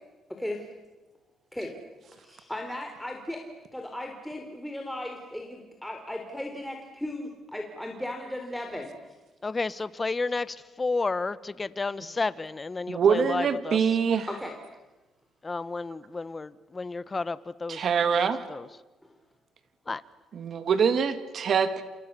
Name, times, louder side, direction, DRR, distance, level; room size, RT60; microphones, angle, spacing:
voice 1, 2.2-3.4 3.7-8.9 14.3-14.5, left 1 dB, 5° left, 2 dB, 3.9 m, -36 dB
voice 2, 9.4-11.3 11.6-13.8 15.4-17.9 18.2-18.7 19.9-20.0, left 3 dB, 25° left, 16 dB, 1.2 m, -31 dB
voice 3, 12.9-14.3 17.7-18.4 20.3-21.8, right 6 dB, 60° right, 10 dB, 2.5 m, -24 dB
29.5 x 28.5 x 7.0 m, 1.2 s
cardioid pair, 90°, 0 cm